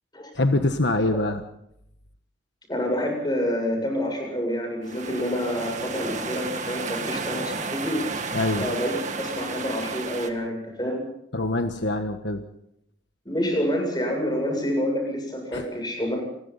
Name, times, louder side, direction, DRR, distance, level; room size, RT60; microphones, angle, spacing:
voice 1, 0.3-1.4 8.3-8.7 11.3-12.4 15.5-15.6, left 2 dB, 65° left, 7 dB, 1.4 m, -24 dB
voice 2, 2.7-11.0 13.3-16.2, equal, 20° left, 3 dB, 7.5 m, -28 dB
sound 1, 4.8-10.3, right 4 dB, 40° right, 2.2 m, -32 dB
29.5 x 21.5 x 4.2 m, 0.74 s
head